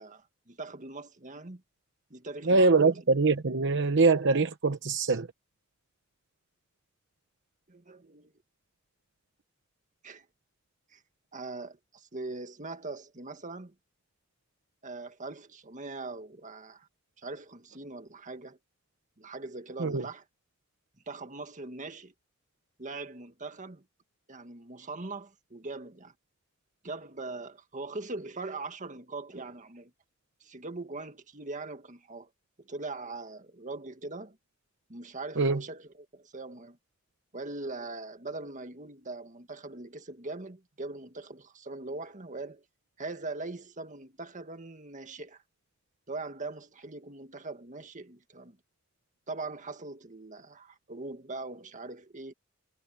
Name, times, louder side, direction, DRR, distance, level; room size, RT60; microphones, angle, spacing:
voice 1, 0.0-1.6 2.1-3.0 3.5-3.6 7.7-8.3 10.0-10.3 10.9-11.0 11.3-13.7 14.8-16.9 17.2-18.6 19.2-20.2 21.1-22.1 22.8-23.9 24.3-26.1 26.8-29.9 30.4-32.3 32.6-34.4 34.9-36.8 37.3-42.6 43.0-45.4 46.1-48.6 49.3-52.3, right 3 dB, 40° right, 1.8 m, -41 dB
voice 2, 2.5-5.3 19.8-20.0 35.4-35.6, right 3 dB, 60° right, 0.9 m, -23 dB
head